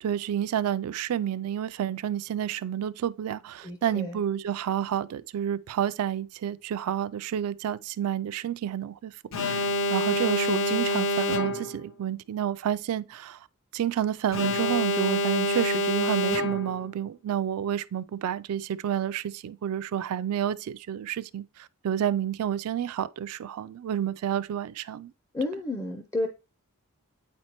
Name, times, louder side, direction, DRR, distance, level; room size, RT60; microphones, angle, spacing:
voice 1, 0.0-13.5 13.7-25.1, right 10 dB, 75° right, 0.3 m, -30 dB
voice 2, 3.6-4.2 25.3-26.3, left 2 dB, 15° left, 0.4 m, -31 dB
Alarm, 9.3-11.9 14.3-16.9, left 1 dB, 65° left, 0.5 m, -27 dB
8.6 x 4.3 x 2.9 m
head